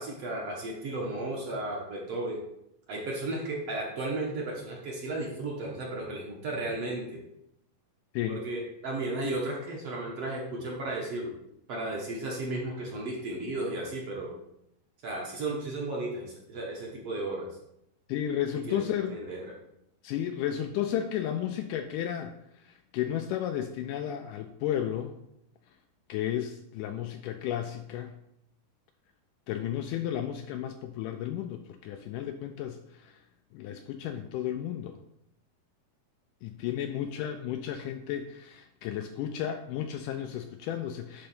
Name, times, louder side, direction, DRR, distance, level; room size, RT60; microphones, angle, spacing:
voice 1, 0.0-2.4 2.9-7.2 8.3-11.3 11.7-14.3 15.0-17.5 18.7-18.8 19.1-19.4, right 2 dB, 55° right, -2 dB, 1.9 m, -34 dB
voice 2, 18.1-19.2 20.0-25.2 26.1-28.2 29.5-33.2 33.5-35.0 36.4-41.3, left 10 dB, 80° left, 7 dB, 1.9 m, -33 dB
11.0 x 3.9 x 5.5 m, 0.81 s
omnidirectional pair, 4.1 m